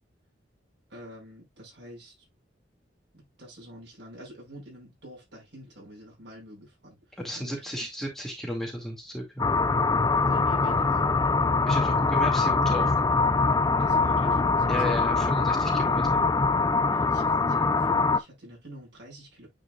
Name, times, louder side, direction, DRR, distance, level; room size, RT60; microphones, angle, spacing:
voice 1, 0.9-2.2 3.1-7.9 10.3-11.1 13.8-15.0 16.9-19.5, equal, 80° right, 5.3 m, -46 dB
voice 2, 7.2-9.4 11.7-12.9 14.7-16.3, equal, ahead, 2.1 m, -33 dB
sound 1, 9.4-18.2, left 3 dB, 20° left, 0.4 m, -23 dB
9.0 x 4.9 x 2.3 m
head